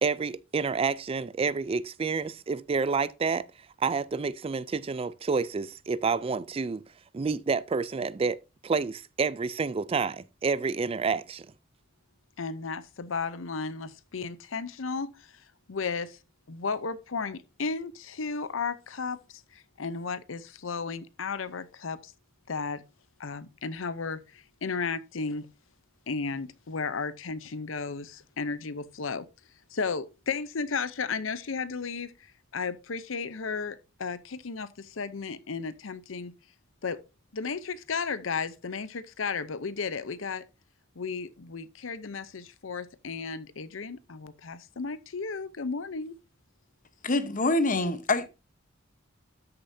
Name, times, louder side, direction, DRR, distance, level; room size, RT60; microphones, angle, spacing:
voice 1, 0.0-3.5 3.8-6.8 7.1-8.4 8.6-11.5, right 5 dB, 30° right, 0.4 m, -29 dB
voice 2, 12.4-15.3 15.7-16.2 16.5-19.2 19.5-22.1 22.5-22.8 23.2-25.5 26.1-29.2 29.7-36.3 36.8-37.0 37.3-40.4 41.0-46.2, left 5 dB, 80° left, 0.7 m, -34 dB
voice 3, 47.0-48.3, left 2 dB, 45° left, 1.0 m, -25 dB
13.0 x 6.7 x 2.7 m
head